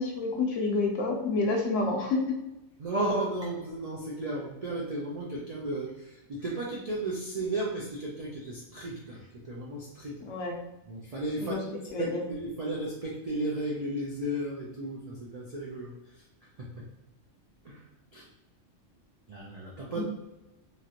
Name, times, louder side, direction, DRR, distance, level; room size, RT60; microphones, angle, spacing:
voice 1, 0.0-2.4 10.3-10.6 11.4-11.6 11.9-12.2 20.0-20.1, left 3 dB, 75° left, 0 dB, 1.0 m, -28 dB
voice 2, 2.8-10.2 10.9-15.9 16.6-16.9 17.6-17.8 18.1-18.3 19.3-20.0, right 1 dB, 65° right, -4 dB, 0.3 m, -34 dB
3.1 x 2.5 x 2.7 m, 0.95 s
omnidirectional pair, 1.3 m